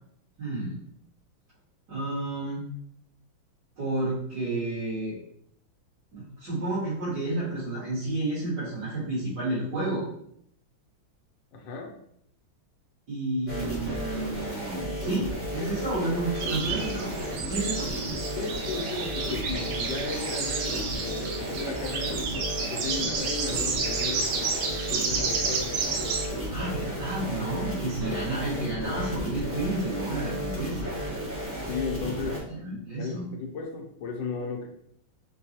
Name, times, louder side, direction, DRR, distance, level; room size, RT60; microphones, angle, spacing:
voice 1, 0.4-0.8 1.9-2.6 3.8-5.2 6.1-10.1 13.1-17.9 26.5-30.9 32.5-33.3, right 2 dB, 55° right, -12 dB, 2.2 m, -31 dB
voice 2, 11.5-11.9 13.5-13.6 15.6-15.8 18.3-22.2 22.7-26.2 28.1-28.2 31.7-32.4 33.0-34.7, left 4 dB, 75° left, 0 dB, 1.3 m, -35 dB
sound 1, 13.5-32.4, equal, 20° right, 0.4 m, -33 dB
sound 2, 16.4-26.3, right 4 dB, 85° right, 0.8 m, -31 dB
4.5 x 2.3 x 2.8 m, 0.70 s
omnidirectional pair, 2.2 m